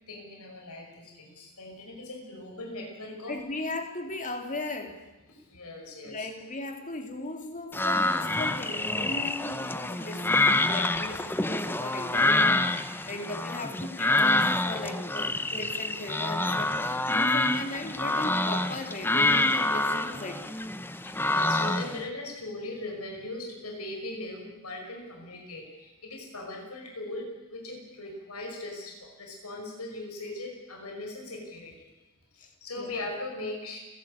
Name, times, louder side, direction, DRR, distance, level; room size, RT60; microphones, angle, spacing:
voice 1, 0.1-3.4 5.3-6.3 21.0-31.9 32.3-33.8, left 2 dB, 85° left, 1 dB, 5.6 m, -39 dB
voice 2, 3.3-5.0 6.0-20.4 32.4-32.5 32.8-32.9, left 2 dB, 35° left, 5 dB, 2.7 m, -37 dB
sound 1, 7.7-22.0, left 2 dB, 10° left, 0.8 m, -27 dB
30.0 x 12.5 x 8.7 m, 1.1 s
head